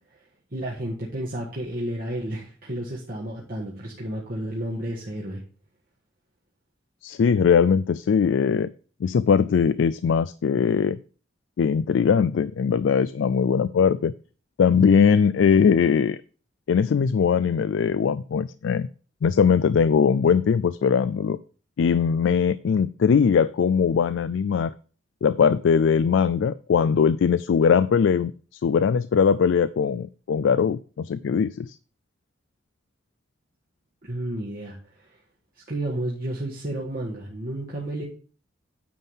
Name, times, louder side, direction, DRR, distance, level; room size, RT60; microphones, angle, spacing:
voice 1, 0.5-5.4 34.0-34.8 35.1-35.2 35.7-38.0, right 1 dB, 50° right, -4 dB, 1.7 m, -31 dB
voice 2, 7.0-8.7 9.0-11.0 11.6-14.1 14.6-16.2 16.7-18.9 19.2-21.4 21.8-24.7 25.2-31.7, left 6 dB, 80° left, 16 dB, 0.4 m, -20 dB
9.5 x 3.7 x 7.2 m, 0.39 s
head